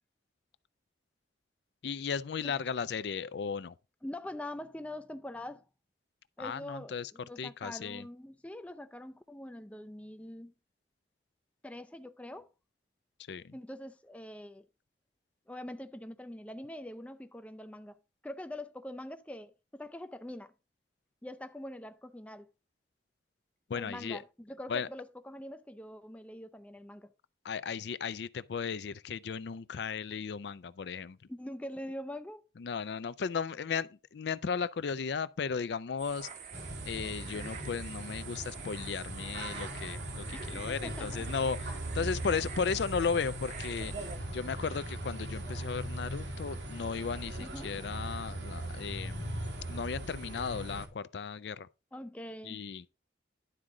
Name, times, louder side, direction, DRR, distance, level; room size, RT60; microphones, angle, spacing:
voice 1, 1.8-3.7 6.4-7.1 7.4-8.1 13.3-13.5 23.7-24.2 24.7-24.9 27.4-31.2 32.6-36.6 36.9-43.9 44.3-49.4 49.7-51.7 52.4-52.8, left 6 dB, 70° left, 0.4 m, -35 dB
voice 2, 4.0-5.7 6.4-10.5 11.6-12.5 13.5-14.7 15.5-18.0 18.2-20.5 21.2-22.5 23.7-27.1 31.3-32.4 40.3-41.2 42.3-42.4 44.0-44.3 47.4-47.7 51.9-52.6, left 1 dB, 5° left, 0.4 m, -44 dB
sound 1, 36.0-44.2, right 6 dB, 40° right, 0.9 m, -47 dB
sound 2, 36.5-50.9, right 1 dB, 80° right, 1.8 m, -39 dB
11.5 x 3.8 x 4.8 m
head